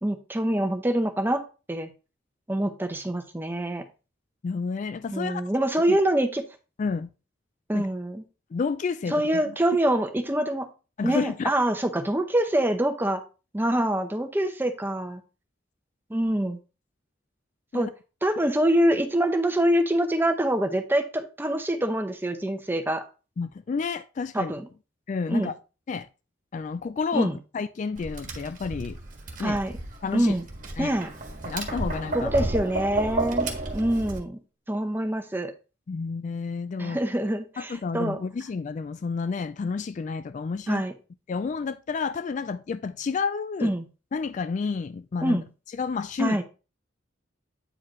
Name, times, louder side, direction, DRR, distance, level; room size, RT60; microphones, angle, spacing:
voice 1, 0.0-1.4 1.7-1.9 2.5-3.8 5.1-6.4 7.7-8.2 9.1-10.7 11.0-13.2 13.5-15.2 16.1-16.6 17.7-17.9 18.2-23.0 24.3-24.7 25.3-25.5 27.1-27.4 29.4-29.8 30.1-30.4 30.8-31.1 32.1-34.4 34.7-35.5 36.8-38.2 40.7-40.9 43.6-43.9 45.2-45.4 46.2-46.4, right 1 dB, 10° right, 0.8 m, -25 dB
voice 2, 4.4-5.4 5.9-6.0 6.8-7.1 7.7-7.9 8.5-9.4 11.0-11.5 17.7-17.9 23.4-24.5 25.1-25.5 25.9-26.1 26.5-29.0 29.4-29.6 30.0-30.4 30.8-31.0 31.5-32.3 35.9-37.0 37.6-40.8 41.3-43.7 44.1-45.4 45.8-46.4, left 5 dB, 40° left, 0.3 m, -30 dB
Tap, 28.0-34.2, right 2 dB, 45° right, 1.5 m, -32 dB
8.9 x 4.7 x 3.1 m
head